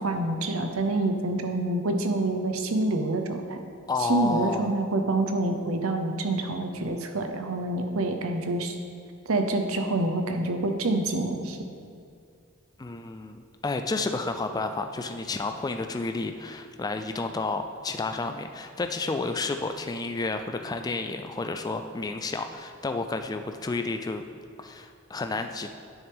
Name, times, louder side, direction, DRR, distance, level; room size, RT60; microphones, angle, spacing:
voice 1, 0.0-3.6 4.0-8.7 9.3-11.6, right 2 dB, 75° right, 5 dB, 0.8 m, -27 dB
voice 2, 3.9-4.8 12.8-24.2 24.6-25.7, left 3 dB, 20° left, 6 dB, 0.3 m, -31 dB
9.7 x 6.6 x 3.5 m, 2.4 s
head